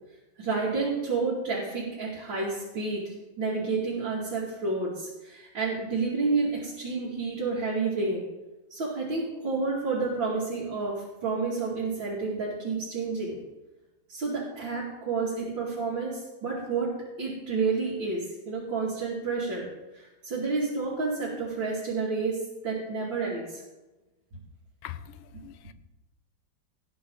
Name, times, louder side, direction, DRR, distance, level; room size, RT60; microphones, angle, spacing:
voice 1, 0.4-8.2 8.7-13.4 14.1-19.7 19.9-23.6, right 4 dB, 60° right, 3.1 m, -30 dB
voice 2, 24.8-25.7, left 12 dB, 80° left, 1.4 m, -42 dB
18.0 x 8.6 x 3.9 m
omnidirectional pair, 2.4 m